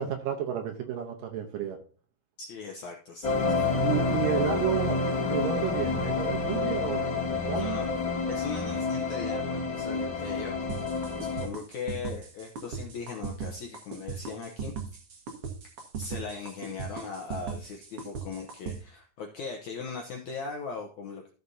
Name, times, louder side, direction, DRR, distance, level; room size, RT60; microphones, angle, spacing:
voice 1, 0.0-1.8 3.8-5.0 5.3-7.0 7.3-7.8, right 9 dB, 75° right, 4 dB, 2.3 m, -31 dB
voice 2, 2.4-3.6 4.9-5.1 6.1-6.2 7.5-7.9 8.3-10.7 11.2-14.7 16.0-21.3, left 5 dB, 75° left, 0 dB, 1.7 m, -39 dB
sound 1, 3.2-11.5, left 3 dB, 40° left, 1.9 m, -29 dB
sound 2, 10.7-18.8, right 7 dB, 55° right, 1.7 m, -37 dB
14.5 x 6.6 x 2.8 m, 0.41 s
omnidirectional pair, 4.6 m